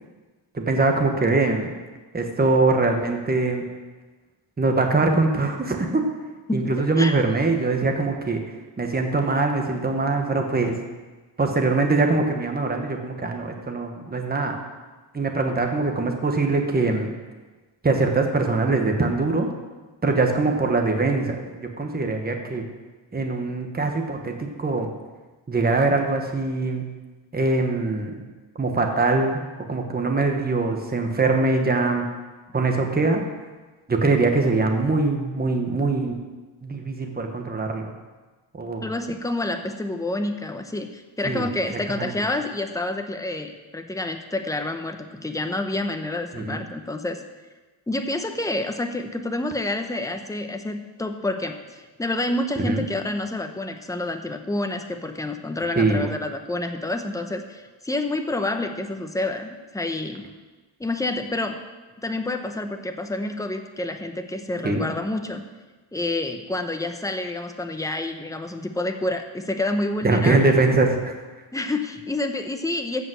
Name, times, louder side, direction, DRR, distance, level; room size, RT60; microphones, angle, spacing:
voice 1, 0.5-1.7 2.1-3.6 4.6-6.1 6.5-8.4 8.8-10.8 11.4-14.6 15.1-17.1 17.8-19.5 20.0-22.6 23.1-24.9 25.5-26.9 27.3-28.2 28.6-29.4 29.7-32.1 32.5-33.2 33.9-36.2 36.6-37.9 38.5-38.9 41.2-41.5 41.9-42.1 46.3-46.6 52.6-52.8 55.8-56.0 64.6-64.8 70.0-71.0, right 3 dB, 20° right, 3 dB, 1.2 m, -22 dB
voice 2, 6.5-7.2 38.8-47.2 47.9-60.2 60.8-61.6 62.0-65.4 65.9-70.4 71.5-73.0, left 2 dB, 5° left, 6 dB, 0.7 m, -28 dB
14.0 x 5.2 x 7.7 m, 1.3 s
wide cardioid pair, 150°, 47 cm